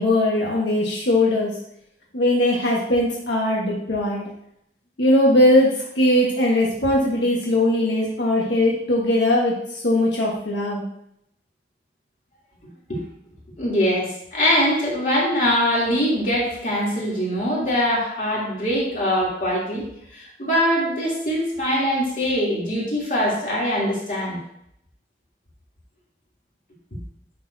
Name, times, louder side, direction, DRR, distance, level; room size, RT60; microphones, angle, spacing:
voice 1, 0.0-1.5 2.1-4.2 5.0-10.9, left 1 dB, 85° left, -4 dB, 1.5 m, -20 dB
voice 2, 13.6-19.8 20.1-24.4, equal, 45° left, -5 dB, 3.2 m, -22 dB
10.0 x 6.6 x 2.8 m, 0.75 s
head